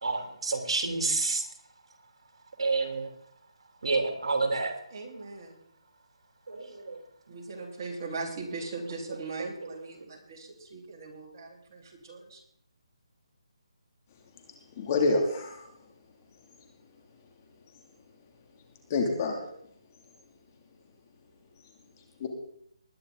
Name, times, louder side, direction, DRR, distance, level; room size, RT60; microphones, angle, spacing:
voice 1, 0.0-1.4 2.6-3.1 3.8-4.7 6.5-7.0 9.4-9.5, right 3 dB, 70° right, 4 dB, 3.2 m, -29 dB
voice 2, 4.9-5.6 7.3-12.4, right 3 dB, 35° right, -2 dB, 4.1 m, -40 dB
voice 3, 14.8-15.7 18.9-19.5 22.2-22.3, left 3 dB, 30° left, 2 dB, 2.7 m, -27 dB
20.5 x 10.0 x 4.0 m, 0.67 s
hypercardioid pair, 165°, 3 cm